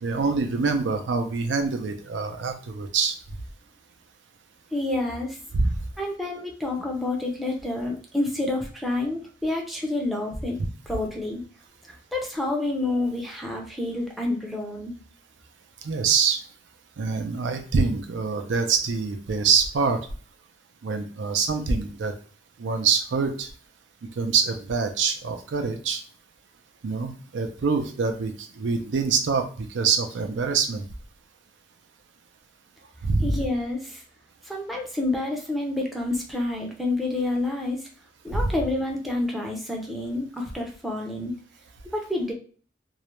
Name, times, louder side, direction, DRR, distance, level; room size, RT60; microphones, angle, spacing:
voice 1, 0.0-3.2 5.5-5.8 15.8-16.4 17.0-20.1 20.8-22.1 22.6-23.5 24.2-26.0 26.8-30.8 33.0-33.4 38.3-38.5, right 5 dB, 85° right, 6 dB, 0.4 m, -25 dB
voice 2, 4.7-5.4 6.0-10.6 10.9-11.4 12.1-14.9 33.2-34.0 34.4-37.9 38.2-41.3 41.9-42.3, left 2 dB, ahead, -1 dB, 0.4 m, -28 dB
2.4 x 2.1 x 2.9 m, 0.42 s
head